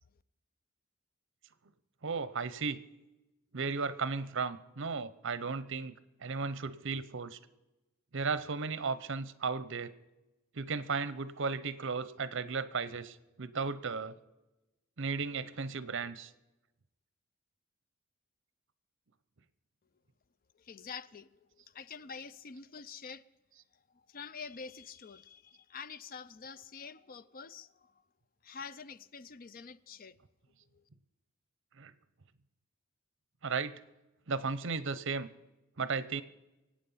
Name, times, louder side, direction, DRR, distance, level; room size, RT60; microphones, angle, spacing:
voice 1, 2.0-2.8 3.5-5.9 6.2-7.4 8.1-9.9 10.5-14.2 15.0-16.3 31.8-31.9 33.4-33.8 34.3-35.3 35.8-36.2, right 4 dB, 65° right, 0.8 m, -35 dB
voice 2, 20.6-21.3 21.5-23.2 23.9-27.9 28.4-30.2 30.7-30.8, left 5 dB, 45° left, 0.5 m, -47 dB
24.5 x 8.8 x 5.7 m
head